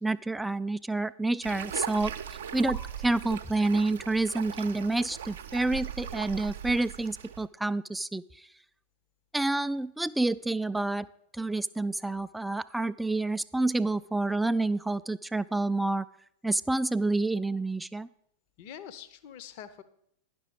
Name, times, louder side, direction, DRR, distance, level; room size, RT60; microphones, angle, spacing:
voice 1, 0.0-2.1 2.5-8.2 9.3-11.1 11.3-16.1 16.4-18.1, right 2 dB, 5° right, 15 dB, 0.3 m, -28 dB
sound 1, 1.4-7.5, right 8 dB, 60° right, 0.6 m, -38 dB
voice 2, 18.6-19.8, left 9 dB, 45° left, 13 dB, 0.7 m, -45 dB
10.5 x 6.1 x 6.9 m, 0.73 s
figure-of-eight pair, 90°, 0 cm